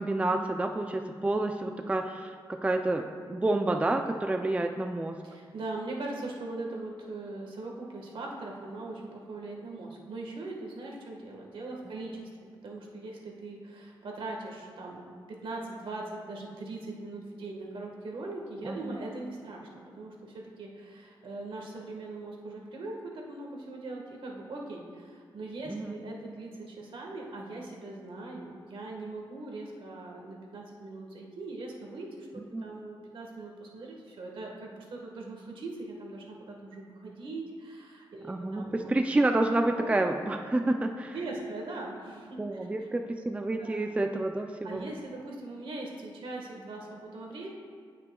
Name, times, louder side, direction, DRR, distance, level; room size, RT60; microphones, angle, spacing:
voice 1, 0.0-5.2 18.6-19.0 25.7-26.0 32.5-32.7 38.3-41.1 42.4-44.9, right 2 dB, 15° right, 5 dB, 0.4 m, -29 dB
voice 2, 5.2-19.7 19.9-38.9 39.7-40.0 41.1-42.9 43.6-43.8 44.6-47.5, right 2 dB, 70° right, -1 dB, 1.5 m, -40 dB
17.0 x 5.8 x 2.3 m, 2.1 s
cardioid pair, 100°, 9 cm